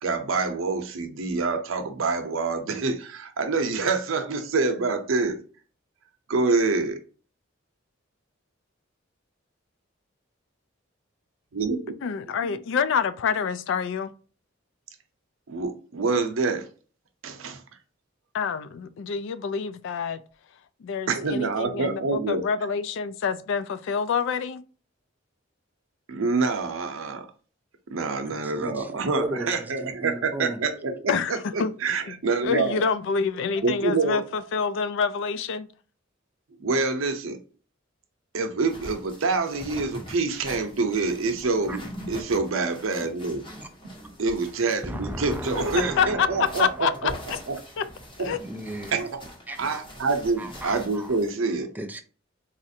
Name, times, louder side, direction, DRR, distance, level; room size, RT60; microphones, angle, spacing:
voice 1, 0.0-5.4 6.3-7.0 11.5-11.8 15.5-16.7 17.2-17.6 21.1-22.4 26.1-27.3 27.9-32.8 33.6-34.2 36.6-37.4 38.3-43.4 44.2-47.1 47.5-47.6 48.2-48.4 48.9-49.2 49.6-51.7, right 3 dB, 85° right, 0.6 m, -26 dB
voice 2, 12.0-14.1 18.3-20.2 20.8-24.6 31.1-31.7 32.1-32.2 32.4-35.7 45.5-47.4 47.8-47.9 48.2-48.4, left 6 dB, 65° left, 0.3 m, -27 dB
voice 3, 28.3-30.6 32.5-32.6 41.7-41.8 44.8-46.6 48.4-49.0 49.5-49.8 50.4-51.2 51.7-52.0, right 1 dB, 10° right, 0.4 m, -35 dB
sound 1, 38.7-51.4, equal, 25° left, 1.1 m, -43 dB
4.2 x 2.4 x 2.6 m
head